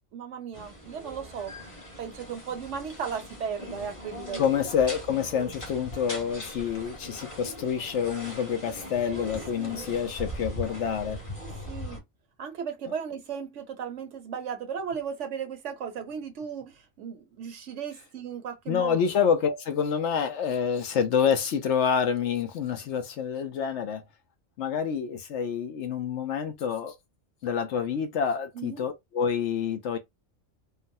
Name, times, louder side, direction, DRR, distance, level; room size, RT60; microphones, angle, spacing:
voice 1, 0.1-1.5 2.0-4.5 9.1-9.3 9.6-9.8 11.4-12.0 12.4-19.0 28.5-28.8, right 7 dB, 65° right, 1.0 m, -36 dB
sound 1, 0.5-12.0, equal, 25° left, 1.2 m, -40 dB
voice 2, 4.4-11.2 18.7-24.0 24.6-26.9 27.4-30.0, left 7 dB, 65° left, 0.9 m, -27 dB
3.8 x 2.0 x 2.6 m
omnidirectional pair, 1.4 m